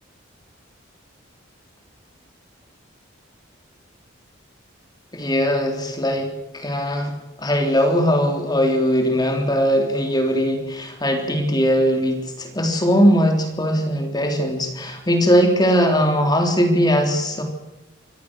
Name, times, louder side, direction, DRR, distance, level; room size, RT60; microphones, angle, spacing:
voice 1, 5.1-7.1 7.4-17.4, equal, 20° left, 4 dB, 3.4 m, -20 dB
25.5 x 17.5 x 6.4 m, 1.0 s
head